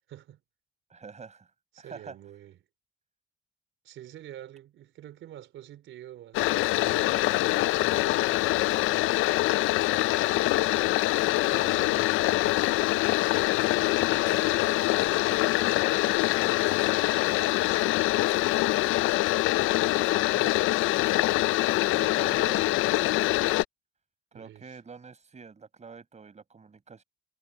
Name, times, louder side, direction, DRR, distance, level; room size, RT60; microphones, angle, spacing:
voice 1, 0.1-0.4 1.7-2.6 3.8-9.1 11.4-12.3 13.8-16.7 20.3-20.6 24.3-24.8, right 12 dB, 80° right, 3.9 m, -48 dB
voice 2, 0.9-1.5 1.8-2.2 10.7-11.0 20.2-20.8 22.0-23.1 24.3-27.0, right 5 dB, 35° right, 5.0 m, -46 dB
sound 1, 6.3-23.6, left 17 dB, 85° left, 0.4 m, -24 dB
cardioid pair, 90°, 20 cm